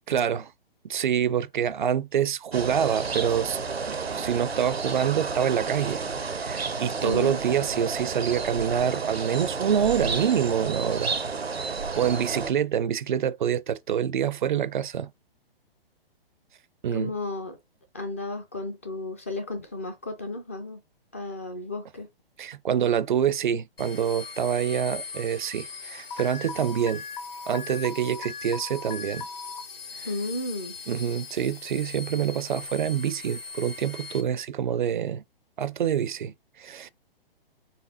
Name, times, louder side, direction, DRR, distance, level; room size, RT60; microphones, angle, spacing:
voice 1, 0.1-0.5 0.9-3.6 4.1-6.0 6.4-11.1 11.6-15.1 16.8-17.1 22.4-27.0 27.5-29.3 30.0-30.1 30.9-35.2 35.6-36.9, right 9 dB, 55° right, 0.4 m, -26 dB
sound 1, 2.5-12.5, right 4 dB, 85° right, 0.7 m, -31 dB
voice 2, 7.0-7.4 16.9-17.6 17.9-20.8 21.1-22.1 30.0-30.8, left 2 dB, 15° left, 0.3 m, -33 dB
sound 2, 23.8-34.2, left 5 dB, 70° left, 1.3 m, -41 dB
Alarm, 26.1-29.6, left 5 dB, 45° left, 0.8 m, -38 dB
4.2 x 3.3 x 3.8 m
figure-of-eight pair, 125°, 30 cm